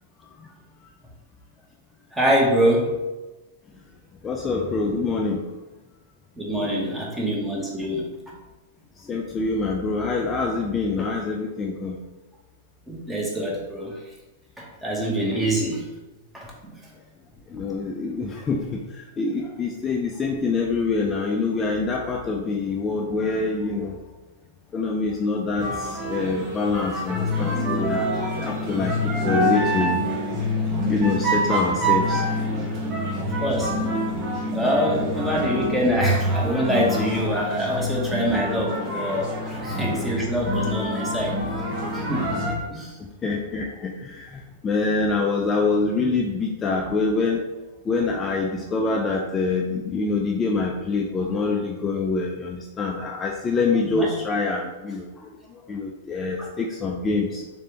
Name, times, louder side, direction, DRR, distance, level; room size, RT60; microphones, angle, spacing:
voice 1, 2.1-2.9 6.4-8.3 12.9-14.0 14.6-15.8 16.3-16.7 33.2-33.7 34.5-41.4 41.9-42.4 42.7-43.0 53.8-54.1 56.4-56.5, equal, 10° right, -3 dB, 1.0 m, -25 dB
voice 2, 4.2-5.4 6.6-6.9 9.1-12.0 17.5-24.0 24.7-28.1 28.4-30.0 30.5-32.2 39.5-39.6 43.2-47.5 47.9-55.1 55.5-57.4, left 3 dB, 20° left, 0 dB, 0.3 m, -25 dB
sound 1, 25.6-42.5, equal, 40° right, 1.0 m, -26 dB
3.4 x 3.2 x 2.9 m, 1.1 s
hypercardioid pair, 125°, 0 cm